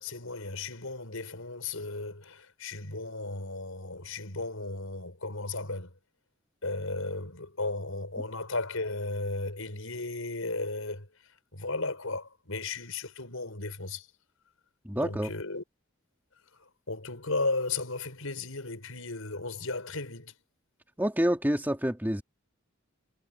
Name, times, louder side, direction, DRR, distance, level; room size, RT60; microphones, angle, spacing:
voice 1, 0.0-5.9 6.6-11.1 11.5-14.1 15.0-15.6 16.5-20.4, left 3 dB, 80° left, 5.5 m, -35 dB
voice 2, 14.8-15.3 21.0-22.2, equal, 10° right, 2.3 m, -27 dB
head